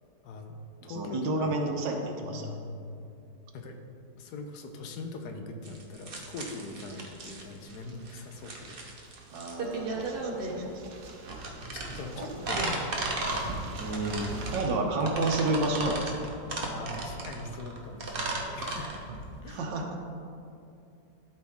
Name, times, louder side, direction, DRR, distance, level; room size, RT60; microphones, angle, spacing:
voice 1, 0.2-0.6 0.8-1.6 2.2-3.1 3.5-3.8 4.2-8.8 11.7-13.1 16.6-18.9 19.4-19.6, left 3 dB, 65° left, 4 dB, 1.2 m, -41 dB
voice 2, 0.8-2.5 9.3-10.9 12.2-12.3 13.8-16.3 19.5-20.0, right 2 dB, 85° right, 2 dB, 1.5 m, -31 dB
sound 1, 5.6-19.4, right 2 dB, 40° right, 0.8 m, -35 dB
sound 2, 7.1-14.6, right 4 dB, 65° right, 1.3 m, -48 dB
12.0 x 4.5 x 3.6 m, 2.6 s
omnidirectional pair, 1.9 m